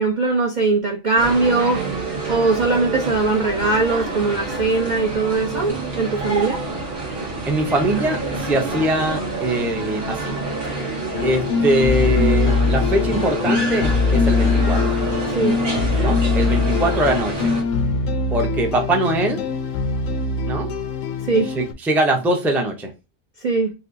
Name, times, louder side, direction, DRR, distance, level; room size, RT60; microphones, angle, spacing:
voice 1, 0.0-1.8 2.3-6.6 15.3-15.6 21.2-21.5 23.4-23.7, right 3 dB, 55° right, 0.5 m, -20 dB
sound 1, 1.2-17.6, right 3 dB, 75° right, 2.0 m, -27 dB
voice 2, 7.1-10.4 10.8-10.9 11.2-15.0 16.0-17.5 18.3-19.4 20.5-20.7 21.5-22.9, right 1 dB, ahead, 0.4 m, -22 dB
sound 2, 11.1-21.7, left 4 dB, 75° left, 0.9 m, -22 dB
5.1 x 2.0 x 2.6 m
omnidirectional pair, 1.4 m